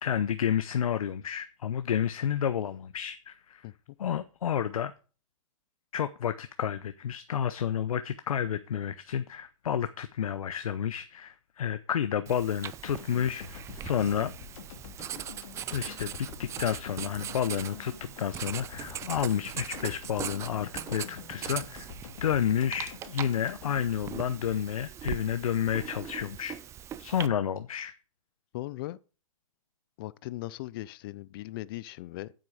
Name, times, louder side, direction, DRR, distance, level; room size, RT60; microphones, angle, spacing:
voice 1, 0.0-3.7 4.0-4.9 5.9-14.3 15.7-21.9 22.2-26.6 27.0-27.9, left 9 dB, 80° left, 0.7 m, -30 dB
Writing, 12.3-27.3, right 10 dB, 15° right, 0.5 m, -41 dB
sound 1, 12.8-25.0, left 7 dB, 65° left, 2.2 m, -46 dB
voice 2, 28.5-29.0 30.0-32.3, left 17 dB, 40° left, 0.5 m, -38 dB
9.4 x 7.8 x 4.8 m
hypercardioid pair, 140°, 18 cm